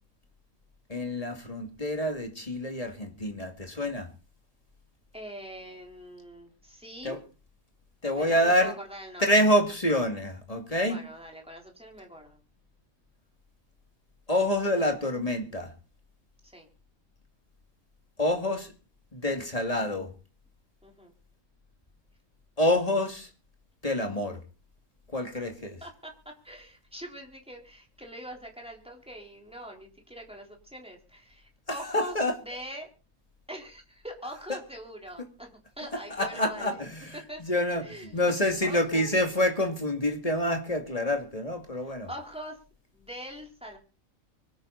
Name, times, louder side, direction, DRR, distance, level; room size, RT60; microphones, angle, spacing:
voice 1, 0.9-4.1 7.0-7.2 8.0-8.7 9.2-11.0 14.3-15.7 18.2-18.7 19.1-20.1 22.6-23.3 23.8-24.4 25.1-25.8 31.8-32.3 36.2-37.8 38.1-42.1, left 1 dB, 25° left, 4 dB, 2.5 m, -27 dB
voice 2, 5.1-7.2 8.1-9.4 10.8-12.4 16.5-16.7 20.8-21.1 25.8-26.1 26.4-32.9 33.5-36.9 37.1-37.4 37.8-38.2 38.6-39.1 41.8-42.6 42.9-43.8, equal, 5° right, 1 dB, 3.7 m, -43 dB
24.5 x 9.6 x 4.1 m, 0.35 s
omnidirectional pair, 1.5 m